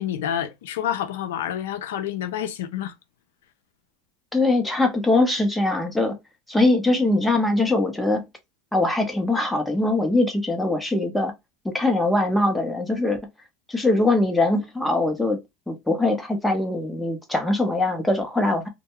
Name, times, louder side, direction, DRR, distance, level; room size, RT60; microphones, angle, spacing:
voice 1, 0.0-2.9, left 10 dB, 90° left, 0.5 m, -28 dB
voice 2, 4.3-6.2 6.5-8.2 8.7-11.3 11.6-13.2 13.7-15.4 15.7-18.7, left 2 dB, 5° left, 0.8 m, -22 dB
2.2 x 2.1 x 2.9 m
supercardioid pair, 115°, 0 cm